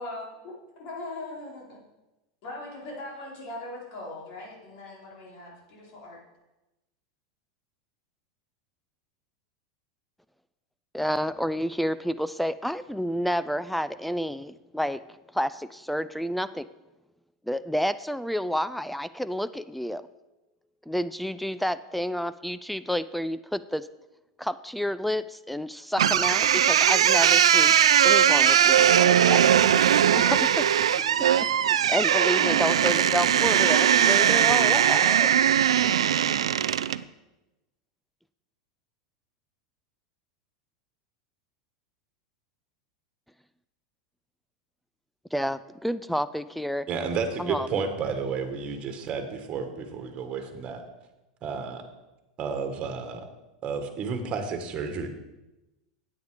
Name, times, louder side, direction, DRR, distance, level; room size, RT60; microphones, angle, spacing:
voice 1, 0.8-1.8 2.4-6.2, left 2 dB, 60° left, -3 dB, 4.1 m, -39 dB
voice 2, 10.9-15.0 15.3-16.7 17.5-20.0 20.9-23.9 24.4-27.7 28.0-29.5 30.1-30.7 31.6-35.3 45.3-46.9 47.4-47.7, equal, ahead, 15 dB, 0.3 m, -29 dB
sound 1, 26.0-37.0, right 9 dB, 90° right, 0.3 m, -20 dB
sound 2, 27.9-28.2 28.5-28.8 29.1-29.4 29.7-30.0 30.3-30.6 30.9-31.2 31.5-31.7 32.1-34.7, left 2 dB, 80° left, 1.9 m, -42 dB
voice 3, 46.9-50.8 51.4-51.8 52.4-53.2 53.6-55.1, right 5 dB, 40° right, 6 dB, 1.7 m, -31 dB
9.3 x 8.6 x 4.9 m, 1.0 s
hypercardioid pair, 105°, 3 cm